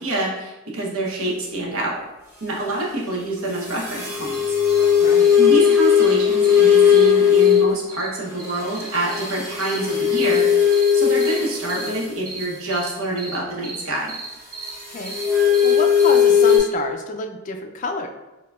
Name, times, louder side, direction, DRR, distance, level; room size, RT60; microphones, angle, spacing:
voice 1, 0.0-2.0 2.4-4.4 5.4-14.1, right 2 dB, 85° right, -3 dB, 0.8 m, -26 dB
sound 1, 3.6-7.8 8.4-12.1 14.6-16.6, left 8 dB, 10° right, 0.8 m, -17 dB
sound 2, 4.3-4.4 4.7-4.8 5.2-5.3 5.6-5.7 6.0-6.1 6.4-6.6 6.9-7.1 7.4-7.6 7.9-8.1 8.4-9.2 9.6-9.8 10.2-10.4 10.7-10.9 11.2-11.4 11.7-11.9 12.2-12.4 12.7-12.9 13.2-13.4 13.6-13.8 14.1-14.3 14.5-14.7 15.0-15.2 15.5-15.7 16.0-16.2 16.5-16.6, right 4 dB, 40° right, 1.0 m, -35 dB
voice 2, 5.0-5.4 14.9-15.1 15.4-18.1, left 2 dB, 35° left, 4 dB, 0.3 m, -28 dB
4.6 x 2.2 x 2.3 m, 1.0 s
head